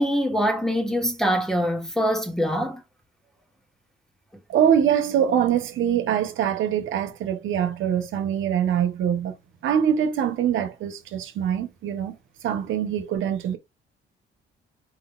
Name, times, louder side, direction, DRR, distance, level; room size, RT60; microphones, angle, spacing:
voice 1, 0.0-2.8, equal, ahead, 1.4 m, -24 dB
voice 2, 4.5-9.3 9.6-12.2 12.4-13.6, right 9 dB, 80° right, 1.2 m, -23 dB
4.9 x 4.1 x 2.5 m
cardioid pair, 120°, 20 cm